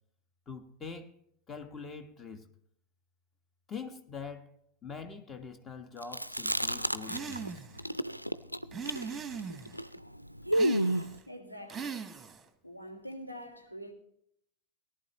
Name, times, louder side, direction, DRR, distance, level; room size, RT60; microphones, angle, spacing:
voice 1, 0.5-1.1 1.5-2.5 3.7-4.5 4.8-7.6, left 5 dB, 20° left, 1.3 m, -44 dB
Chewing mastication, 6.0-7.5 7.8-11.2, equal, 90° right, 0.4 m, -31 dB
sound 1, 7.1-7.8 8.7-9.8 10.5-11.2 11.7-12.5, right 6 dB, 15° right, 1.2 m, -40 dB
voice 2, 11.3-12.1 12.6-13.9, equal, 85° left, 2.0 m, -45 dB
18.0 x 11.5 x 3.0 m
figure-of-eight pair, 90°, 0 cm